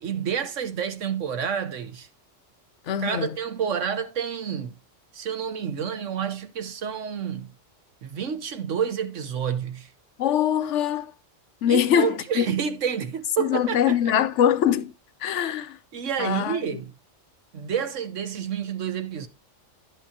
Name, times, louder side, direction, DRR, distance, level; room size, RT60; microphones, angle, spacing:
voice 1, 0.0-2.1 3.0-4.8 5.1-7.5 8.0-9.9 11.7-14.2 15.9-16.9 17.5-19.3, right 7 dB, 80° right, 1.3 m, -29 dB
voice 2, 2.9-3.4 10.2-11.1 11.6-12.5 13.4-14.9 15.2-15.8 16.2-16.8, left 9 dB, 70° left, 1.0 m, -23 dB
11.0 x 8.3 x 2.8 m
omnidirectional pair, 1.3 m